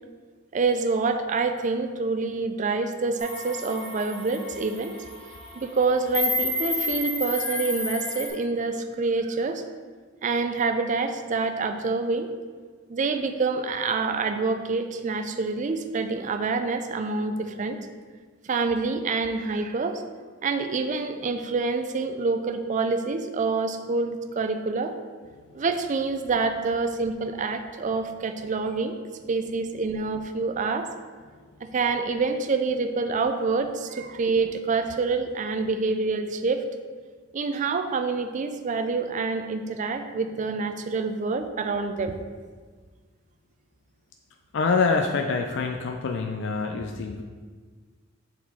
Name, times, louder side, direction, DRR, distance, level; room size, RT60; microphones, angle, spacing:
voice 1, 0.5-4.9 5.6-9.6 10.2-12.3 12.9-17.8 18.4-20.0 20.4-24.9 25.5-29.0 29.3-30.9 31.6-36.7 37.3-42.2, right 4 dB, 40° right, 8 dB, 0.4 m, -27 dB
sound 1, 3.2-8.3, left 2 dB, 30° left, 1.5 m, -30 dB
voice 2, 44.5-47.2, left 4 dB, 65° left, 3 dB, 0.4 m, -25 dB
7.0 x 4.0 x 3.6 m, 1.5 s
head